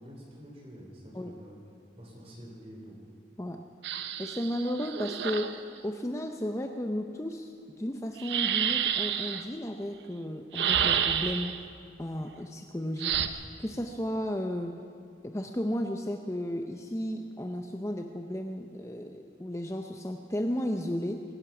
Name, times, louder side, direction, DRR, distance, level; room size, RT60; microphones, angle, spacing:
voice 1, 0.0-1.6 2.0-3.0, equal, 30° right, -2 dB, 4.0 m, -47 dB
sound 1, 3.8-5.6 8.2-9.4 10.5-11.6 13.0-13.3, right 8 dB, 75° right, 0.7 m, -29 dB
voice 2, 4.2-11.7 12.0-14.8 15.2-21.2, equal, 15° left, 5 dB, 0.5 m, -34 dB
23.0 x 10.5 x 5.9 m, 2.4 s
head